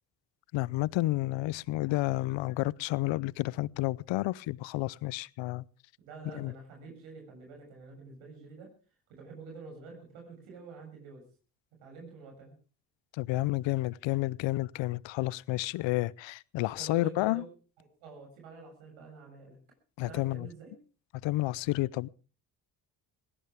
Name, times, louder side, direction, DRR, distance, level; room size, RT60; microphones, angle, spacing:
voice 1, 0.5-5.7 6.3-6.5 13.1-17.4 20.0-20.5 21.2-22.1, left 18 dB, 65° left, 0.7 m, -30 dB
voice 2, 6.0-8.7 9.1-11.2 11.8-12.6 16.6-17.5 17.8-19.6 20.1-20.8, right 4 dB, 80° right, 7.5 m, -48 dB
20.0 x 17.5 x 3.5 m
hypercardioid pair, 50°, 48 cm